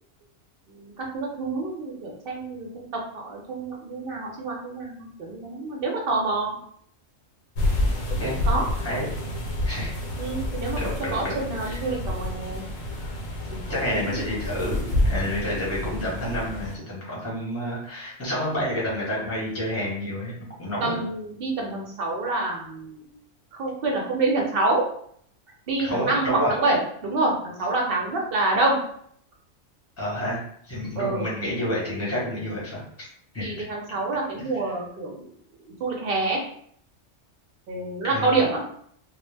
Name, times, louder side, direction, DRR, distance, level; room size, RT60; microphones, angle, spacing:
voice 1, 0.7-6.6 8.4-8.7 10.2-10.8 11.1-12.6 13.5-13.6 13.9-14.1 20.8-23.1 23.5-24.8 25.7-28.8 31.0-31.3 33.4-35.3 35.8-36.4 37.7-38.6, right 2 dB, 60° right, -1 dB, 0.7 m, -27 dB
sound 1, 7.5-16.7, left 1 dB, 85° left, 1.0 m, -28 dB
voice 2, 10.8-11.8 13.7-20.9 25.8-26.6 30.0-30.4 30.7-32.8 33.3-33.6 34.6-34.7 38.1-38.4, equal, 15° left, -5 dB, 0.7 m, -29 dB
2.2 x 2.0 x 3.2 m, 0.65 s
omnidirectional pair, 1.3 m